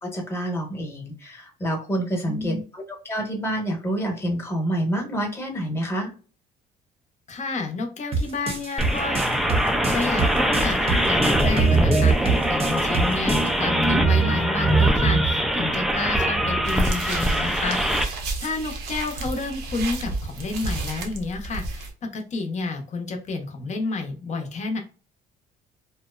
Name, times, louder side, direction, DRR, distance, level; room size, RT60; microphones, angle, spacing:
voice 1, 0.0-6.1, right 1 dB, 15° left, 1 dB, 0.9 m, -28 dB
voice 2, 2.2-2.6 7.3-9.2 9.9-18.0 18.4-24.8, left 3 dB, 45° left, 4 dB, 0.7 m, -30 dB
sound 1, 8.1-13.5, right 3 dB, 35° right, 0.7 m, -27 dB
sound 2, 8.8-18.0, right 1 dB, ahead, 0.3 m, -21 dB
sound 3, 16.6-21.9, right 3 dB, 85° right, 0.7 m, -32 dB
2.7 x 2.0 x 2.3 m, 0.36 s
cardioid pair, 110°, 17 cm